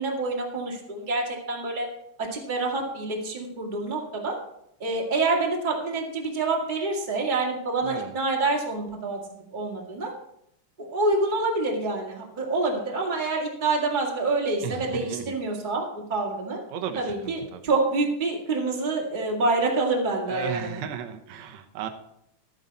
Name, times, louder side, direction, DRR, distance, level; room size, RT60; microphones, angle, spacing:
voice 1, 0.0-1.9 2.2-4.3 4.8-9.2 9.5-10.1 10.8-15.8 16.1-16.6 17.0-20.8, right 3 dB, 15° right, -2 dB, 1.9 m, -27 dB
voice 2, 7.8-8.1 14.6-15.4 16.7-17.6 20.3-21.9, right 8 dB, 70° right, 6 dB, 2.1 m, -35 dB
12.5 x 9.1 x 4.2 m, 0.75 s
omnidirectional pair, 3.6 m